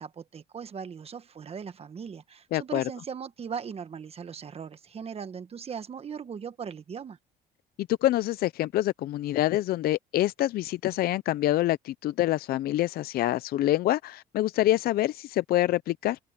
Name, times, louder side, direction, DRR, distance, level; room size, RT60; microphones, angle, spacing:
voice 1, 0.0-7.2, right 6 dB, 35° right, 1.4 m, -39 dB
voice 2, 2.5-2.8 7.8-16.2, left 14 dB, 65° left, 0.5 m, -26 dB
cardioid pair, 110°, 17 cm